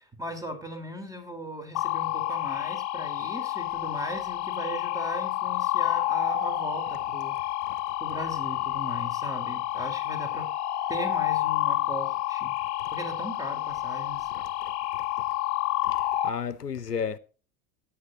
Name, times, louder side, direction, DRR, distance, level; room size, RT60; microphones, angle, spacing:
voice 1, 0.0-7.4 8.0-10.5 10.9-12.5 12.9-14.3, equal, 5° right, 4.0 m, -37 dB
sound 1, 1.7-16.3, left 14 dB, 40° left, 1.4 m, -29 dB
voice 2, 14.3-14.7 15.2-15.3 15.8-17.2, left 7 dB, 90° left, 0.7 m, -34 dB
17.0 x 9.9 x 2.8 m
figure-of-eight pair, 75°, 46 cm